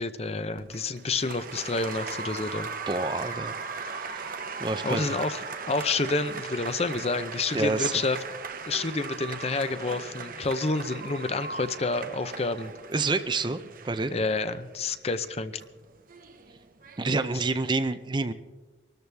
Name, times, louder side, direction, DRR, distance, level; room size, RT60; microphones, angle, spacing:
voice 1, 0.0-2.7 4.8-8.2 8.7-12.7 14.1-15.6, left 3 dB, 35° left, 11 dB, 0.7 m, -29 dB
Applause, 0.6-17.7, right 5 dB, 50° right, 1.0 m, -39 dB
voice 2, 2.9-3.5 3.8-5.2 7.5-7.9 12.9-13.6 13.8-14.1 17.0-18.3, right 3 dB, 25° right, 11 dB, 0.6 m, -28 dB
24.5 x 13.5 x 3.5 m, 1.2 s
head